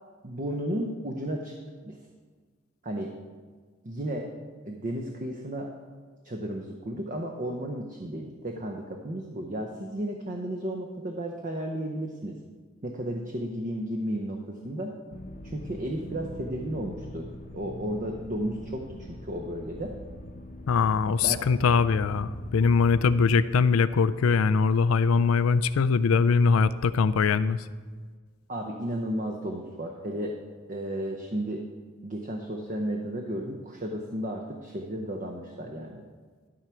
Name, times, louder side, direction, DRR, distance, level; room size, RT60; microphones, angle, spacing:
voice 1, 0.2-1.5 1.8-2.0 2.8-3.1 3.8-4.3 4.7-5.7 6.2-12.4 12.8-14.9 15.4-17.3 17.5-19.9 21.2-21.4 28.5-30.4 30.7-31.6 32.0-36.0, right 1 dB, 40° right, 2 dB, 0.7 m, -33 dB
sound 1, 15.1-23.2, equal, 40° left, 0.8 m, -41 dB
voice 2, 20.7-27.7, left 5 dB, 90° left, 16 dB, 0.4 m, -22 dB
12.5 x 4.5 x 6.2 m, 1.5 s
head